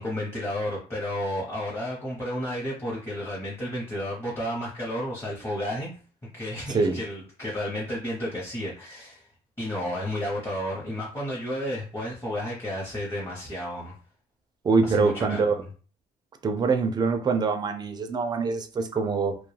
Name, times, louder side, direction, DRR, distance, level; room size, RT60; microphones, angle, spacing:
voice 1, 0.0-5.9 6.3-9.3 9.6-13.9 14.8-15.7, left 1 dB, 15° left, -6 dB, 0.8 m, -32 dB
voice 2, 14.6-15.6 16.4-19.4, right 4 dB, 25° right, 7 dB, 0.4 m, -24 dB
2.2 x 2.2 x 3.1 m, 0.40 s
cardioid pair, 110°, 17 cm